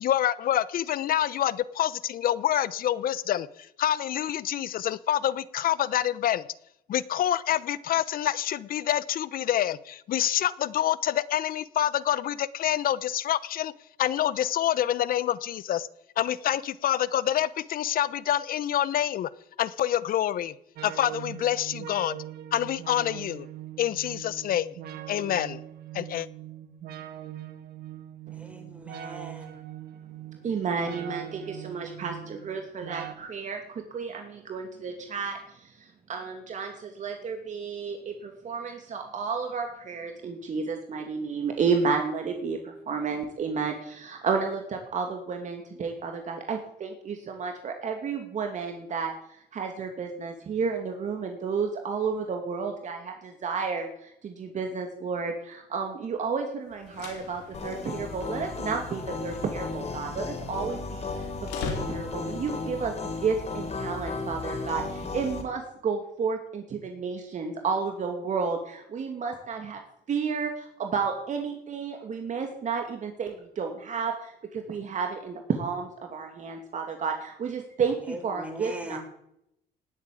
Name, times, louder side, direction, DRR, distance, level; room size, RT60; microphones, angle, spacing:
voice 1, 0.0-6.4 6.9-13.7 14.0-15.9 16.2-19.3 19.6-20.5 20.8-22.2 22.5-23.5 23.8-24.8 25.1-25.6 25.9-26.3, left 11 dB, 60° left, 18 dB, 0.9 m, -27 dB
sound 1, 20.8-33.1, right 12 dB, 70° right, 1.7 m, -41 dB
voice 2, 28.3-29.6 78.0-79.0, right 1 dB, 10° right, 5 dB, 4.3 m, -40 dB
voice 3, 30.4-61.3 61.6-62.9 63.2-69.8 70.1-79.0, right 5 dB, 45° right, 3 dB, 2.5 m, -31 dB
sound 2, 56.7-62.5, left 5 dB, 90° left, 4.3 m, -42 dB
sound 3, 57.5-65.4, left 3 dB, 40° left, 4.7 m, -35 dB
19.0 x 8.5 x 8.6 m, 0.77 s
cardioid pair, 110°, 17 cm